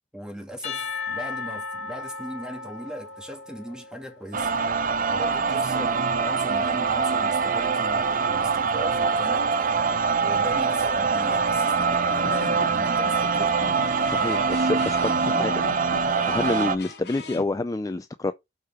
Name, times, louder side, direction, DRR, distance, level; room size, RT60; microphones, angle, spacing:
voice 1, 0.1-4.5 5.1-9.6 10.2-13.6, equal, 5° right, 2.0 m, -39 dB
Percussion / Church bell, 0.6-4.8, left 4 dB, 45° left, 4.3 m, -36 dB
sound 1, 4.3-16.8, right 5 dB, 50° right, 0.7 m, -24 dB
sound 2, 12.1-13.1 13.6-17.4, left 3 dB, 65° left, 2.3 m, -40 dB
voice 2, 14.1-15.7 16.3-18.3, left 2 dB, 20° left, 0.4 m, -28 dB
6.6 x 4.7 x 4.8 m
head